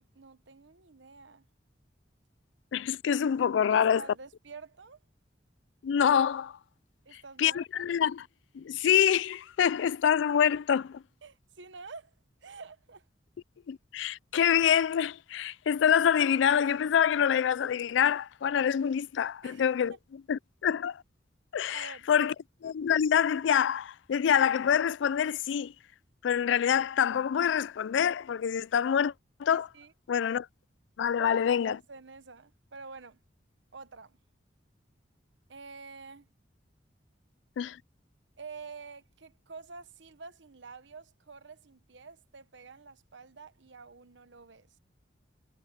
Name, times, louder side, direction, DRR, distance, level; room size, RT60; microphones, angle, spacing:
voice 1, 0.0-1.4 3.7-5.0 7.0-7.9 11.2-12.1 12.4-13.0 19.4-19.6 21.7-22.1 29.5-29.9 31.2-33.2 33.7-34.2 35.5-36.3 38.4-44.7, right 4 dB, 75° right, 1.1 m, -48 dB
voice 2, 2.7-4.0 5.8-6.6 7.4-8.2 8.5-11.0 13.7-21.0 21.5-22.3 22.6-25.7 26.2-29.1 29.4-29.7 30.1-30.5 31.0-31.8 37.6-37.8, left 8 dB, 75° left, 0.3 m, -26 dB
head